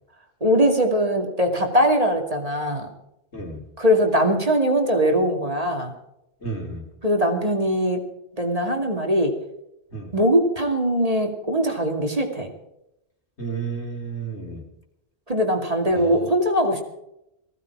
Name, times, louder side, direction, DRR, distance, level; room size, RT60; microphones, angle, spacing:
voice 1, 0.4-2.9 3.8-5.9 7.0-8.0 8.4-9.4 10.1-12.5 15.3-16.8, equal, 35° right, 3 dB, 2.6 m, -21 dB
voice 2, 6.4-6.8 9.9-10.1 13.4-14.6 16.0-16.2, right 4 dB, 90° left, 0 dB, 4.0 m, -32 dB
19.0 x 16.0 x 4.8 m, 0.84 s
omnidirectional pair, 1.1 m